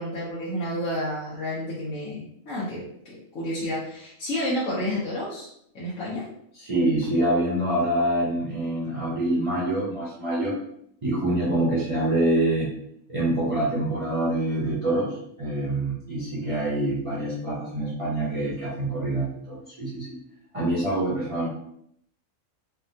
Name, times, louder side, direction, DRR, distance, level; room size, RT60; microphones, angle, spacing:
voice 1, 0.0-5.5 5.7-6.2, left 1 dB, 80° left, -8 dB, 1.2 m, -30 dB
voice 2, 6.5-10.5 11.0-12.7 13.1-20.2 20.5-21.5, right 1 dB, 35° right, -8 dB, 0.6 m, -25 dB
3.4 x 2.2 x 2.6 m, 0.71 s
omnidirectional pair, 1.4 m